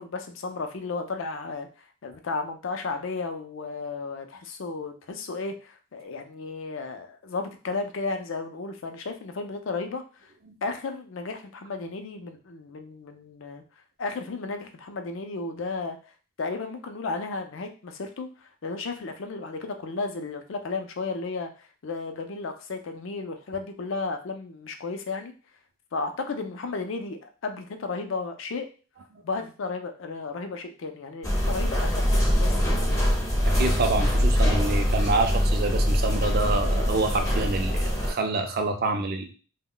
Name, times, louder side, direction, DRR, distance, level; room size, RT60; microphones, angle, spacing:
voice 1, 0.0-1.7 2.0-10.0 10.6-13.6 14.0-16.0 16.4-18.3 18.6-21.5 21.8-25.3 25.9-28.7 29.2-33.1, left 3 dB, 65° left, 6 dB, 0.5 m, -33 dB
sound 1, 31.2-38.1, equal, 15° left, 0.5 m, -23 dB
voice 2, 33.4-39.3, right 3 dB, 45° right, 5 dB, 0.4 m, -27 dB
2.2 x 2.1 x 3.7 m, 0.36 s
head